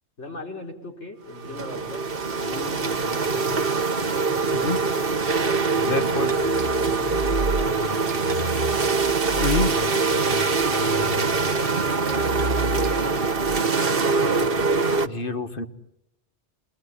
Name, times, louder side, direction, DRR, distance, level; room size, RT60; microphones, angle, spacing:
voice 1, 0.2-2.1 2.3-3.6 4.1-4.5 6.6-8.6 10.7-13.7, left 2 dB, 80° left, 1 dB, 5.2 m, -39 dB
sound 1, 1.3-15.1, right 4 dB, 55° right, 1.6 m, -23 dB
sound 2, 5.6-13.6, right 2 dB, 90° right, 1.7 m, -32 dB
voice 2, 5.8-6.4 9.4-9.7 15.0-15.7, left 3 dB, 50° left, 7 dB, 1.8 m, -26 dB
28.5 x 21.0 x 9.9 m, 0.84 s
omnidirectional pair, 1.2 m